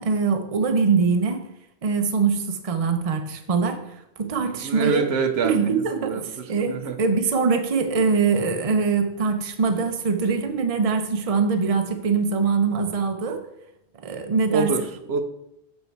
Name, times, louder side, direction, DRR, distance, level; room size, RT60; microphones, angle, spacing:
voice 1, 0.0-1.4 1.8-3.8 4.2-5.0 5.4-13.4 14.0-14.7, right 5 dB, 35° right, 6 dB, 0.8 m, -23 dB
voice 2, 4.4-7.0 14.5-15.2, right 5 dB, 70° right, 8 dB, 0.9 m, -26 dB
8.1 x 4.4 x 4.6 m, 0.82 s
omnidirectional pair, 1.1 m